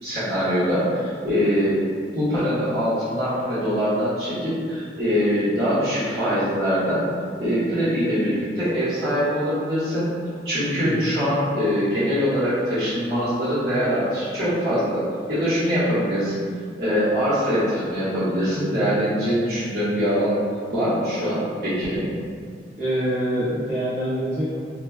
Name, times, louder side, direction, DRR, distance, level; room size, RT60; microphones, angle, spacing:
voice 1, 0.0-1.8 2.1-7.0 7.4-10.1 10.4-16.4 16.8-20.4 20.7-22.0, equal, 60° right, -13 dB, 1.4 m, -23 dB
voice 2, 10.8-11.2 22.8-24.6, equal, 40° right, -13 dB, 1.3 m, -25 dB
3.1 x 2.2 x 2.2 m, 2.1 s
head